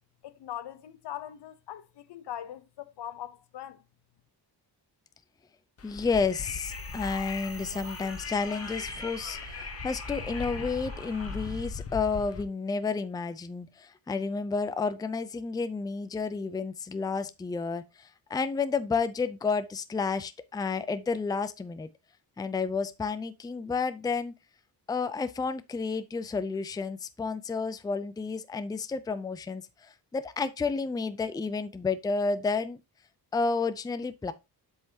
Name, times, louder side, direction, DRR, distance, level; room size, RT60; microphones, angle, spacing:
voice 1, 0.2-3.8, left 11 dB, 80° left, 0.9 m, -41 dB
Wind, 5.8-12.4, left 5 dB, 35° left, 0.9 m, -39 dB
voice 2, 5.8-21.9 22.4-24.4 24.9-32.8 33.3-34.3, left 4 dB, 10° left, 0.4 m, -31 dB
sound 1, 6.6-11.7, right 4 dB, 70° right, 3.3 m, -46 dB
7.7 x 5.6 x 2.8 m
wide cardioid pair, 140°, 41 cm